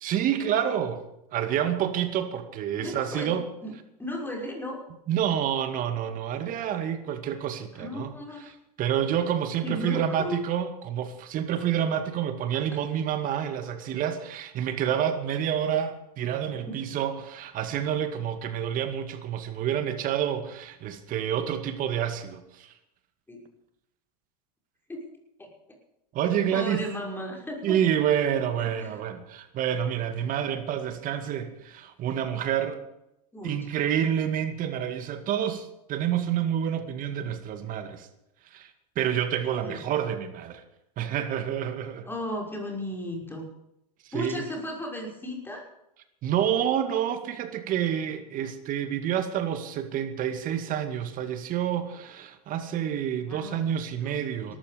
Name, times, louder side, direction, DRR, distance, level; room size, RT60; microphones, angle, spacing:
voice 1, 0.0-1.1 1.3-3.4 5.1-8.1 8.8-22.7 26.1-26.9 27.6-32.8 33.4-38.1 38.5-38.7 39.0-40.6 41.0-42.1 44.1-44.4 46.2-54.5, right 9 dB, 40° right, 8 dB, 2.2 m, -28 dB
voice 2, 2.8-3.3 3.6-3.7 4.0-4.8 7.7-8.5 9.6-10.4 16.7-16.8 23.3-23.4 24.9-25.0 25.4-25.5 26.5-27.8 28.6-29.0 33.3-33.6 39.6-39.8 42.0-43.4 44.1-45.6 53.3-53.7 54.0-54.2 54.5-54.6, left 1 dB, 10° left, 0 dB, 6.0 m, -35 dB
18.5 x 14.0 x 5.2 m, 0.84 s
hypercardioid pair, 105°, 20 cm